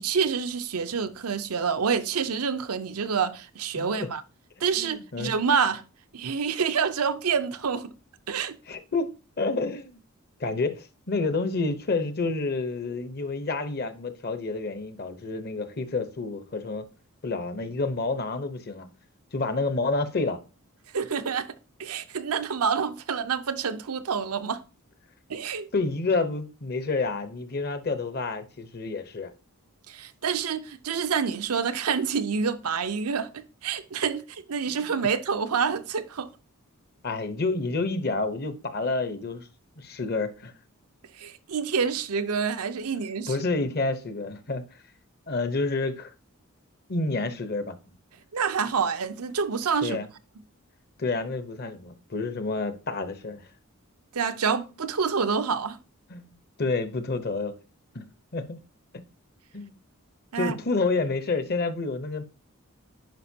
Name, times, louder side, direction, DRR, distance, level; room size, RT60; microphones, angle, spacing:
voice 1, 0.0-4.2 4.6-5.8 6.1-7.9 8.3-8.6 20.9-21.5 21.8-24.6 25.3-25.7 29.9-36.3 41.2-43.4 48.3-50.0 54.1-55.8 60.3-60.5, right 6 dB, 85° right, 0.7 m, -27 dB
voice 2, 3.8-4.1 4.8-5.3 8.7-10.0 10.4-16.8 17.2-18.9 19.3-20.4 25.7-29.3 37.0-39.5 39.8-40.5 43.3-44.6 45.3-46.1 46.9-47.8 49.8-50.1 51.0-53.4 56.1-56.2 56.6-57.5 57.9-58.0 58.3-58.6 59.5-59.8 60.4-62.2, left 3 dB, 45° left, 0.8 m, -29 dB
10.5 x 5.1 x 2.8 m
head